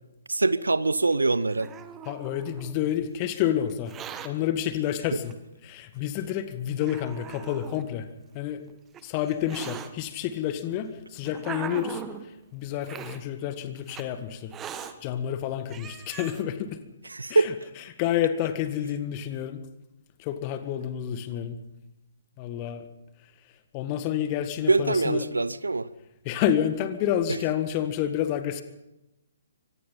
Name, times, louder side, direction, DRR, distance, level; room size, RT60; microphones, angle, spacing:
voice 1, 0.3-1.7 17.1-17.5 24.7-25.9, right 3 dB, 75° right, 0.8 m, -23 dB
Hiss, 1.1-2.8 3.7-4.3 5.3-5.4 6.2-6.3 6.8-7.8 8.7-9.9 10.7-12.2 12.8-13.2 13.9-14.0 14.5-14.9 15.4-15.5 15.7-16.4, right 8 dB, 15° right, 1.4 m, -40 dB
voice 2, 2.1-4.0 4.2-5.4 5.6-8.1 8.3-8.6 9.0-14.5 15.0-16.8 17.3-17.5 18.0-19.6 20.2-21.6 22.4-22.8 23.7-25.3 26.3-28.6, left 10 dB, 30° left, 1.8 m, -29 dB
24.5 x 19.0 x 5.6 m
figure-of-eight pair, 130°, 0 cm